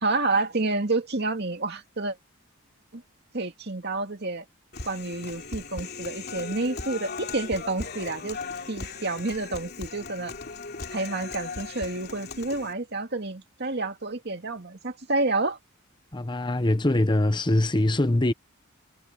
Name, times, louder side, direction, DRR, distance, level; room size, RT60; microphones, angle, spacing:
voice 1, 0.0-2.2 2.9-3.0 3.3-4.5 4.8-8.4 8.7-10.3 10.9-15.6, right 2 dB, 50° right, 2.3 m, -29 dB
Human voice, 4.7-12.7, left 4 dB, 50° left, 2.9 m, -38 dB
voice 2, 16.1-18.3, left 1 dB, 20° left, 0.9 m, -23 dB
head